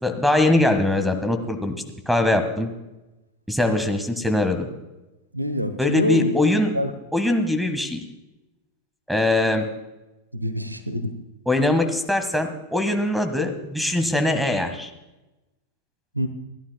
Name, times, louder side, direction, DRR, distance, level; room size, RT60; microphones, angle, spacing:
voice 1, 0.0-1.7 2.1-2.7 3.5-4.7 5.8-6.7 7.1-8.0 9.1-9.7 11.5-14.9, left 2 dB, ahead, 9 dB, 1.7 m, -22 dB
voice 2, 5.3-6.3 6.7-6.9 10.3-11.1 16.1-16.3, equal, 85° right, 11 dB, 1.0 m, -25 dB
29.0 x 11.5 x 2.3 m, 1.0 s
figure-of-eight pair, 90°, 0 cm